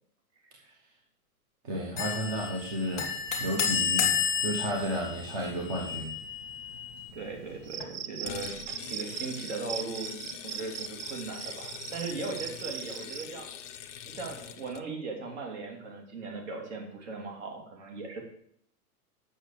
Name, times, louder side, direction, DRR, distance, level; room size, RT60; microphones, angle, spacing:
voice 1, 1.6-3.1 3.4-6.1, right 1 dB, 25° right, -1 dB, 1.1 m, -32 dB
sound 1, 2.0-7.8, left 7 dB, 5° right, 0.4 m, -32 dB
voice 2, 7.1-13.5 14.0-18.2, right 4 dB, 45° right, 2 dB, 2.8 m, -38 dB
Cricket, 7.6-13.3, right 9 dB, 65° right, 0.7 m, -40 dB
sound 2, 8.2-14.8, left 9 dB, 50° left, 0.7 m, -43 dB
9.0 x 6.5 x 6.6 m, 0.68 s
supercardioid pair, 180°, 46 cm